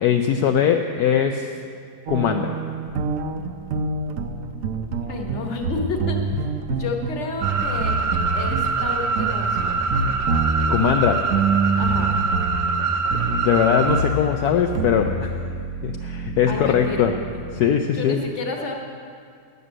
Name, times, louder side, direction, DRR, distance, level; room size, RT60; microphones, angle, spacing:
voice 1, 0.0-1.5 2.1-2.6 10.7-11.2 13.3-15.3 15.8-17.1 17.5-18.2, left 8 dB, 75° left, 4 dB, 1.1 m, -20 dB
sound 1, 2.1-17.6, right 3 dB, 65° right, 1.1 m, -27 dB
voice 2, 5.0-6.2 6.8-8.0 8.3-9.9 11.8-12.1 16.5-17.1 17.9-18.7, left 3 dB, 45° left, 2 dB, 1.5 m, -30 dB
sound 2, 7.4-14.0, right 5 dB, 45° right, 1.1 m, -24 dB
11.0 x 8.0 x 7.6 m, 2.3 s
omnidirectional pair, 1.8 m